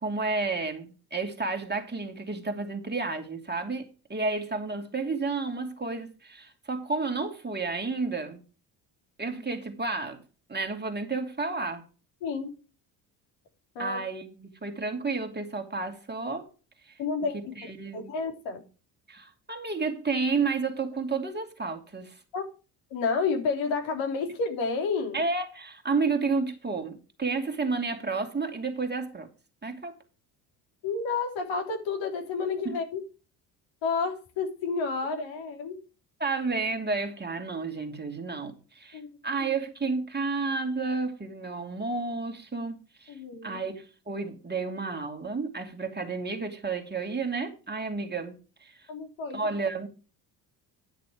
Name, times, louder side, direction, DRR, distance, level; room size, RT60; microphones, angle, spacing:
voice 1, 0.0-8.4 9.2-10.2 10.5-11.8 13.8-16.5 16.9-17.0 17.3-18.1 19.1-22.2 25.1-29.3 29.6-29.9 32.6-32.8 36.2-43.1 43.4-48.8 49.3-49.9, right 4 dB, 20° right, 2.7 m, -31 dB
voice 2, 12.2-12.5 13.7-14.0 17.0-17.4 17.9-18.6 22.3-22.4 22.9-25.2 30.8-33.0 33.8-35.8 38.9-39.1 43.1-43.6 48.9-49.4, left 4 dB, 70° left, 3.4 m, -30 dB
11.0 x 6.7 x 4.8 m
supercardioid pair, 65°, 47 cm